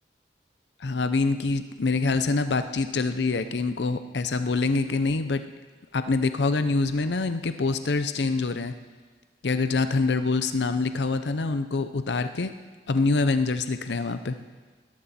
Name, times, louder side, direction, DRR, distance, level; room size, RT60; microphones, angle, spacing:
voice 1, 0.8-5.4 5.9-8.7 9.4-12.5 12.9-14.4, left 3 dB, 75° left, 10 dB, 0.6 m, -25 dB
20.0 x 13.5 x 4.2 m, 1.4 s
head